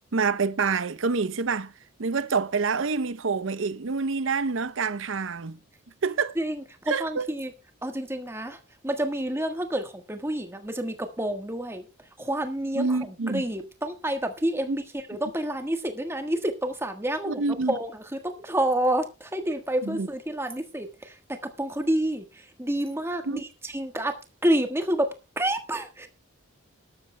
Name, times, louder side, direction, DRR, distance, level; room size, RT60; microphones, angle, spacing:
voice 1, 0.1-1.7 2.0-5.6 6.0-6.4 6.9-7.3 12.8-13.4 14.7-14.8 17.3-17.7 19.8-20.1 23.3-23.4, right 4 dB, 60° right, 0.6 m, -27 dB
voice 2, 6.4-7.5 7.8-11.9 12.2-24.1 24.4-25.1 25.4-26.1, right 1 dB, 10° right, 1.4 m, -29 dB
19.5 x 12.5 x 2.2 m
head